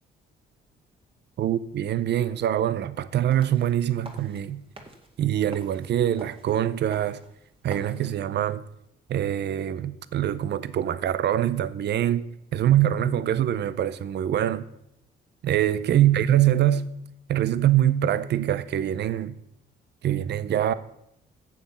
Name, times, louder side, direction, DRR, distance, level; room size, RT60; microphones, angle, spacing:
voice 1, 1.4-4.6 5.2-7.2 7.6-8.6 9.1-12.2 12.5-14.7 15.4-16.9 17.3-19.4 20.0-20.7, right 11 dB, 60° right, 0.6 m, -24 dB
sound 1, 3.1-8.1, right 2 dB, 25° right, 2.0 m, -47 dB
9.2 x 7.2 x 7.0 m
cardioid pair, 90°, 20 cm